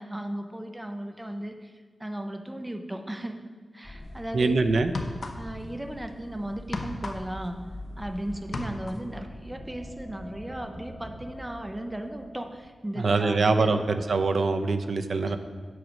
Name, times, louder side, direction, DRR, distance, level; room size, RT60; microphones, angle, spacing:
voice 1, 0.0-1.7 2.0-3.4 3.7-4.6 5.4-7.6 8.0-13.9 15.3-15.4, right 1 dB, 15° right, 5 dB, 0.6 m, -36 dB
sound 1, 3.8-12.6, left 1 dB, 20° left, 1.8 m, -43 dB
sound 2, 4.0-4.2 4.8-5.7 6.0-8.1 8.4-9.1, left 2 dB, 50° left, 0.7 m, -36 dB
voice 2, 4.3-4.9 13.0-15.4, right 3 dB, 70° right, 7 dB, 0.5 m, -24 dB
7.9 x 6.0 x 5.2 m, 1.5 s
wide cardioid pair, 135°, 0 cm